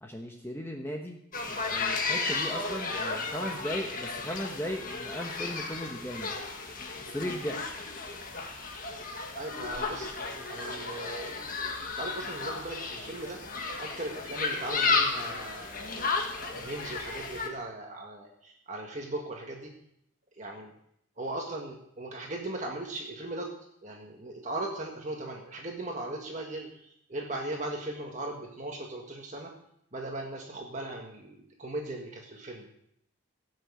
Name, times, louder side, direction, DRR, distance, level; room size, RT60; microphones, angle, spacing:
voice 1, 0.0-1.2 1.5-6.3 7.1-7.6, equal, 10° left, 1 dB, 1.1 m, -37 dB
sound 1, 1.3-17.5, left 4 dB, 40° left, 1.7 m, -33 dB
voice 2, 9.3-11.7 12.0-13.4 13.8-16.1 16.4-19.7 20.3-20.7 21.2-23.5 23.8-29.5 29.9-32.7, right 2 dB, 35° right, 0 dB, 1.7 m, -38 dB
16.5 x 6.5 x 8.3 m, 0.73 s
head